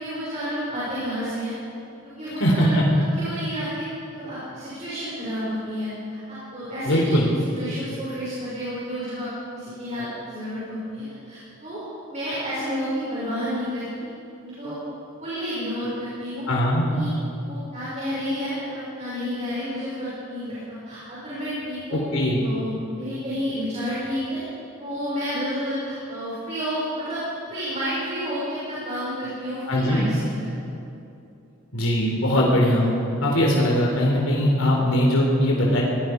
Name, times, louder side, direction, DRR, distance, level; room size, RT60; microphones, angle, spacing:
voice 1, 0.0-1.5 2.0-3.9 4.1-7.2 7.5-11.8 12.1-14.1 14.4-14.8 15.2-16.5 16.9-17.1 17.5-22.0 22.4-24.4 24.8-30.8, equal, 30° right, -10 dB, 7.2 m, -30 dB
voice 2, 2.4-2.8 6.9-7.3 16.5-16.9 21.9-22.4 29.7-30.0 31.7-32.9 33.2-35.8, equal, 80° left, -2 dB, 4.1 m, -20 dB
26.0 x 19.5 x 5.5 m, 2.6 s
head